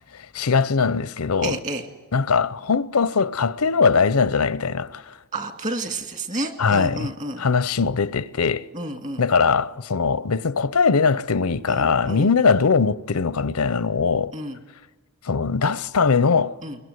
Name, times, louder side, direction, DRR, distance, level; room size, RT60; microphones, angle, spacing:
voice 1, 0.1-1.6 2.1-5.1 6.6-7.1 7.4-8.7 9.2-14.3 15.3-16.6, left 5 dB, 90° left, 0.7 m, -21 dB
voice 2, 1.4-1.9 5.3-7.5 8.7-9.2 11.7-12.3 14.3-14.6 16.6-16.8, right 2 dB, 35° right, 2.0 m, -30 dB
22.0 x 20.5 x 9.5 m
head